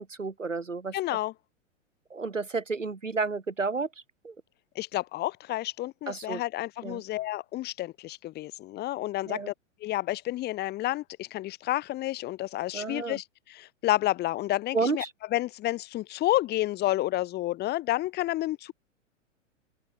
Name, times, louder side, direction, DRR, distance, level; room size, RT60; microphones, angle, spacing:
voice 1, 0.0-0.9 2.1-3.9 4.2-4.3 6.1-6.4 6.8-7.0 9.3-9.5 12.7-13.2 14.7-15.1, right 4 dB, 80° right, 3.9 m, -31 dB
voice 2, 0.9-1.3 4.8-9.5 9.8-15.0 15.3-18.7, left 16 dB, 25° left, 2.4 m, -30 dB
open air
figure-of-eight pair, 105°, 38 cm